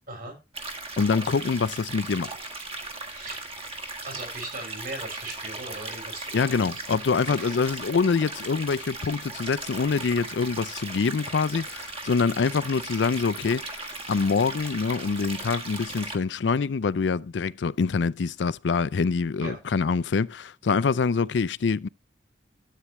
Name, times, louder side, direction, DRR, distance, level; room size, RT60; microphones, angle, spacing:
sound 1, 0.5-16.2, right 2 dB, 35° right, 1.6 m, -37 dB
voice 1, 1.0-2.3 6.3-21.9, left 5 dB, 70° left, 0.4 m, -25 dB
voice 2, 3.1-3.5 4.1-6.9 7.4-7.6 19.4-19.6, right 2 dB, 50° right, 5.8 m, -39 dB
13.0 x 8.5 x 3.1 m
head